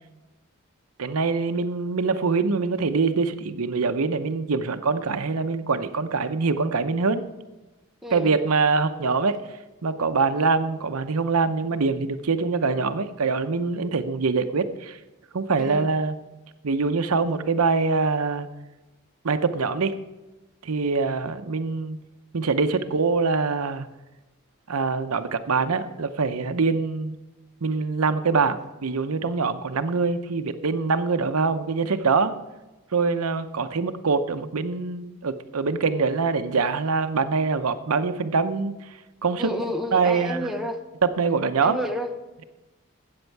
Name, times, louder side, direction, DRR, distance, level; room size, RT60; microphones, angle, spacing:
voice 1, 1.0-7.2 8.1-9.4 9.8-15.0 15.3-16.1 16.6-18.5 19.2-20.0 20.6-22.0 22.3-23.9 24.7-27.2 27.6-32.3 32.9-38.7 39.2-39.5 39.9-40.5 41.0-41.8, right 4 dB, 80° right, 10 dB, 0.7 m, -24 dB
voice 2, 8.0-8.6 15.6-15.9 39.4-40.8 41.6-42.1, equal, ahead, 3 dB, 0.8 m, -30 dB
13.5 x 8.8 x 4.6 m, 1.1 s
head